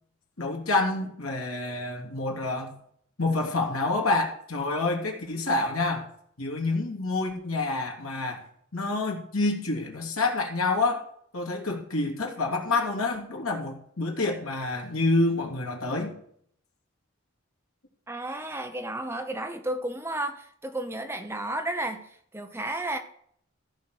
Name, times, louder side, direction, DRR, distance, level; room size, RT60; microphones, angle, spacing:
voice 1, 0.4-2.8 3.2-6.1 6.4-8.4 8.7-11.0 11.3-16.1, left 2 dB, 85° left, 2.8 m, -28 dB
voice 2, 18.1-23.0, right 1 dB, 10° right, 0.8 m, -32 dB
14.5 x 5.4 x 6.4 m
head